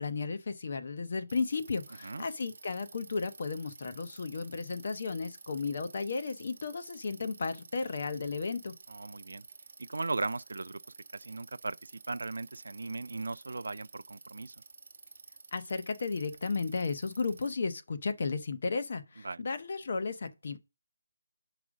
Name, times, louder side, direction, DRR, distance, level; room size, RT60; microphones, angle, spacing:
voice 1, 0.0-8.7 15.5-20.6, left 4 dB, 35° left, 0.7 m, -34 dB
Bicycle, 1.3-17.5, right 4 dB, 45° right, 0.8 m, -52 dB
voice 2, 8.9-9.4 9.8-10.8 11.1-14.5 19.2-19.4, right 3 dB, 75° right, 0.3 m, -37 dB
4.9 x 4.9 x 6.1 m
hypercardioid pair, 175°, 0 cm